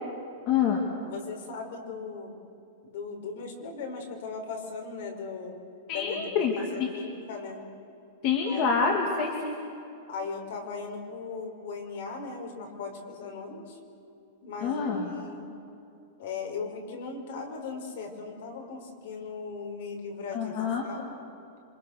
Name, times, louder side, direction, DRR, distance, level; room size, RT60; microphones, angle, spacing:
voice 1, 0.5-0.9 5.9-6.9 8.2-9.6 14.6-15.1 20.3-20.8, left 6 dB, 35° left, 1 dB, 2.3 m, -27 dB
voice 2, 1.0-2.3 2.8-5.5 5.9-7.6 8.4-8.8 10.1-13.8 14.4-15.5 16.2-20.6 20.8-21.2, left 4 dB, 55° left, 3 dB, 5.1 m, -38 dB
28.0 x 26.0 x 6.6 m, 2.7 s
supercardioid pair, 175°, 0 cm